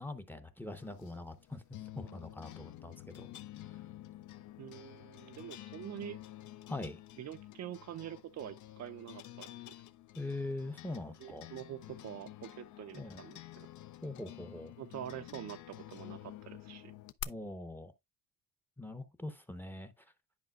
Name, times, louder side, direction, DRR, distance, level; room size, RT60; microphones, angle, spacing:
voice 1, 0.0-3.3 6.7-7.0 10.2-11.5 12.9-13.2 14.0-14.7 17.2-17.9 18.8-19.9, left 2 dB, 5° left, 0.7 m, -42 dB
sound 1, 0.8-17.2, left 14 dB, 50° left, 0.5 m, -50 dB
voice 2, 4.6-6.2 7.2-9.5 11.2-13.7 14.8-16.9, right 11 dB, 45° right, 0.5 m, -45 dB
10.5 x 5.0 x 2.3 m
cardioid pair, 140°, 38 cm